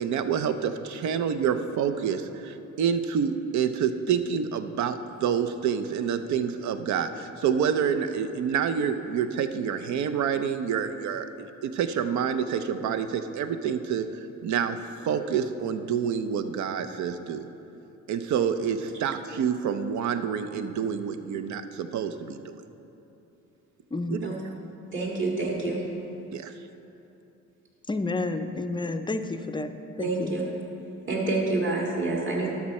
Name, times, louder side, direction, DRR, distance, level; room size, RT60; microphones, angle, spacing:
voice 1, 0.0-14.1 14.4-14.8 15.0-17.5 18.1-22.6 24.0-24.3 26.3-26.5, right 7 dB, 70° right, 10 dB, 0.6 m, -28 dB
voice 2, 23.9-24.2 27.9-29.7 30.0-30.3, left 2 dB, 15° left, 8 dB, 0.4 m, -30 dB
voice 3, 24.9-25.8 30.0-30.4 31.1-32.5, right 2 dB, 40° right, -3 dB, 2.0 m, -27 dB
12.0 x 6.1 x 4.2 m, 2.9 s
cardioid pair, 90°, 30 cm